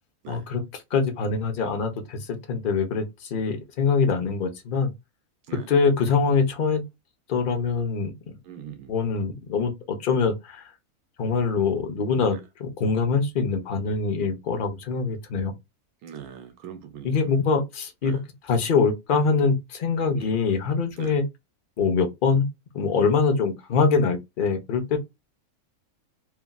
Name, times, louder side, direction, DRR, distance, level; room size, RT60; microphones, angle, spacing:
voice 1, 0.3-4.9 5.7-6.8 7.3-8.1 8.9-10.7 11.2-15.5 17.0-18.1 18.5-21.2 21.8-22.5 22.7-25.0, left 5 dB, 45° left, 0.8 m, -24 dB
voice 2, 8.4-8.9 12.3-12.4 16.0-17.1 18.0-18.2 20.2-20.3 21.0-21.2, right 8 dB, 80° right, 1.1 m, -41 dB
3.1 x 2.5 x 2.3 m
omnidirectional pair, 1.5 m